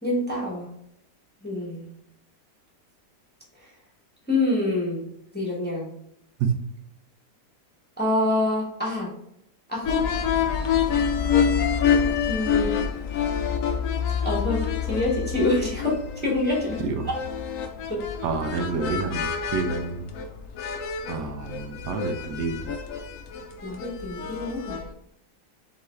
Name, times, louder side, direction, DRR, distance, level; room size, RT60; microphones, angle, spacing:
voice 1, 0.0-0.7 1.4-1.9 4.3-5.0 5.3-5.9 8.0-9.1 9.7-10.0 12.3-12.7 14.2-16.8 17.9-18.0 23.6-24.8, left 2 dB, 5° left, -4 dB, 1.1 m, -26 dB
sound 1, 9.8-24.9, left 7 dB, 65° left, 0.9 m, -27 dB
voice 2, 18.2-20.1 21.1-22.7, right 4 dB, 80° right, 5 dB, 1.3 m, -28 dB
3.8 x 3.8 x 3.2 m, 0.76 s
omnidirectional pair, 1.8 m